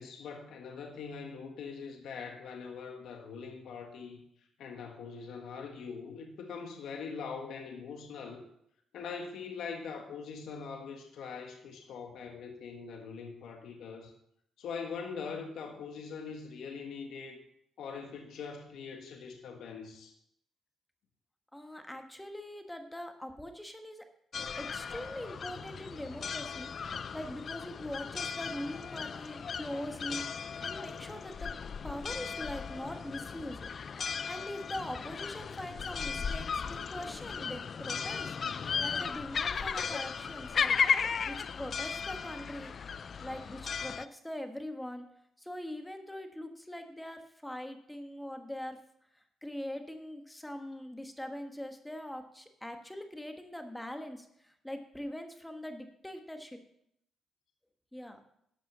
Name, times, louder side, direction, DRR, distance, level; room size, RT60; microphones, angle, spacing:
voice 1, 0.0-4.2 4.6-8.4 8.9-14.1 14.6-17.4 17.8-20.1, left 5 dB, 75° left, 3 dB, 1.7 m, -42 dB
voice 2, 21.5-24.1 24.6-26.7 27.1-31.5 31.8-40.8 41.2-42.7 43.2-45.1 45.4-48.8 49.4-56.6 57.9-58.2, left 1 dB, 5° left, 6 dB, 1.5 m, -42 dB
sound 1, 24.3-44.1, left 6 dB, 45° left, 0.5 m, -36 dB
12.0 x 6.1 x 6.1 m, 0.74 s
cardioid pair, 90°, 0 cm